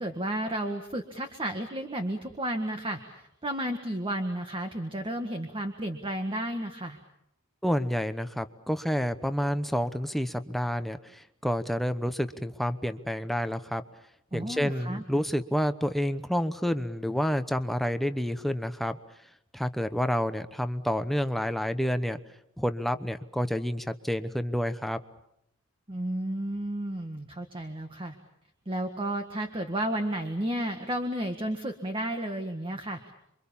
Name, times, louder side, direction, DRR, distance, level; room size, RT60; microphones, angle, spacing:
voice 1, 0.0-7.0 14.3-15.0 25.9-28.2 28.6-33.1, right 1 dB, 25° right, 6 dB, 1.7 m, -32 dB
voice 2, 7.6-13.8 14.3-19.0 19.5-22.2 22.6-25.0, equal, ahead, 10 dB, 1.0 m, -29 dB
28.0 x 24.5 x 7.2 m, 0.79 s
head